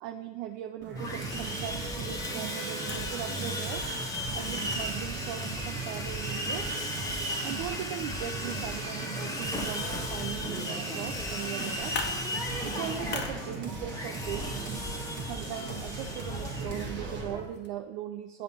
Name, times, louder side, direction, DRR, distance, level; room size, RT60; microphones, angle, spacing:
voice 1, 0.0-3.9 4.3-6.7 7.4-12.1 12.6-14.9 15.3-18.4, right 11 dB, 45° right, 6 dB, 0.6 m, -39 dB
sound 1, 0.8-17.3, right 3 dB, 30° right, 1.5 m, -40 dB
Sawing, 1.0-17.4, equal, 10° left, 1.5 m, -35 dB
sound 2, 2.0-17.7, left 4 dB, 30° left, 1.3 m, -46 dB
8.5 x 5.4 x 5.5 m, 1.2 s
figure-of-eight pair, 85°, 37 cm